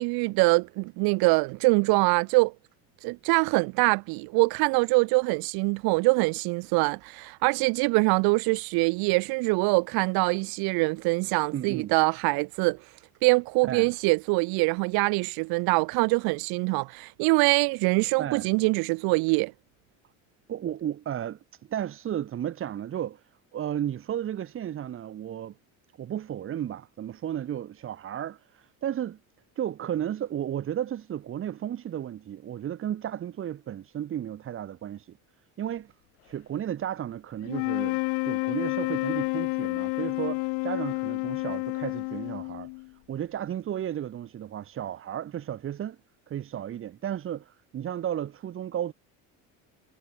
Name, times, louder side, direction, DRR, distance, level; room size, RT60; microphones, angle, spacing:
voice 1, 0.0-2.5 3.0-12.8 13.2-19.5, right 28 dB, 75° right, 3.0 m, -24 dB
voice 2, 11.5-11.9 13.7-13.9 18.2-18.5 20.5-23.2 23.5-25.6 26.0-29.2 29.6-35.2 35.6-35.9 36.2-38.0 38.2-42.7 43.1-46.0 46.3-48.9, right 10 dB, 35° right, 2.8 m, -33 dB
sound 1, 37.4-42.9, left 37 dB, 80° left, 1.3 m, -30 dB
cardioid pair, 155°, 37 cm